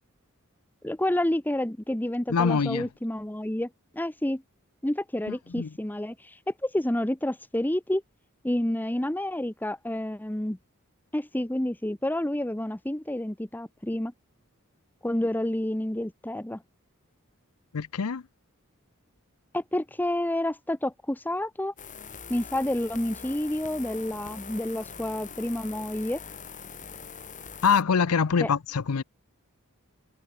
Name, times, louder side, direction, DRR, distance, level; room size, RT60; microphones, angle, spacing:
voice 1, 0.8-4.4 4.8-8.0 8.4-10.6 11.1-14.1 15.0-16.6 19.5-21.7 22.3-26.2 28.4-28.5, left 1 dB, 10° left, 0.9 m, -29 dB
voice 2, 2.3-2.9 5.3-5.7 17.7-18.2 27.6-29.0, left 6 dB, 80° left, 0.6 m, -24 dB
sound 1, 21.8-27.8, left 6 dB, 35° left, 2.6 m, -43 dB
head